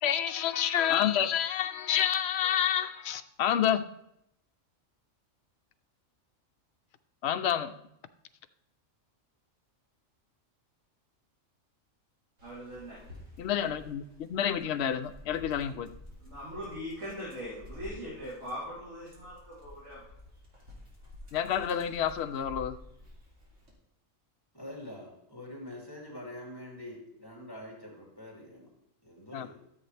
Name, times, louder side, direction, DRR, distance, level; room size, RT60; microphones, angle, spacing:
voice 1, 0.0-3.8 7.2-7.7 13.4-15.9 21.3-22.8 29.3-29.5, left 9 dB, 60° left, 0.8 m, -29 dB
Dog, 12.4-23.7, left 2 dB, 70° right, 2.8 m, -51 dB
voice 2, 12.4-13.0 16.2-20.0, equal, 90° right, 3.8 m, -41 dB
voice 3, 24.5-28.7 29.0-29.6, left 1 dB, 15° left, 2.7 m, -45 dB
13.5 x 7.4 x 3.3 m
omnidirectional pair, 1.4 m